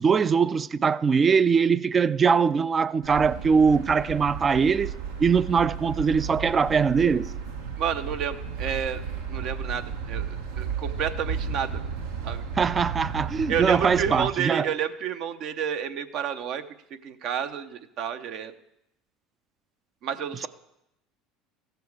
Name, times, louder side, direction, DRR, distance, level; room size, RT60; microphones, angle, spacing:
voice 1, 0.0-4.9 5.2-7.3 12.6-14.7, right 6 dB, 30° right, 0.3 m, -22 dB
sound 1, 3.0-14.3, right 6 dB, 85° right, 1.2 m, -34 dB
voice 2, 7.8-9.0 9.3-11.8 12.2-12.4 13.5-16.6 17.0-18.5 20.0-20.5, right 8 dB, 60° right, 0.7 m, -30 dB
15.0 x 6.9 x 4.7 m
hypercardioid pair, 85°, 0 cm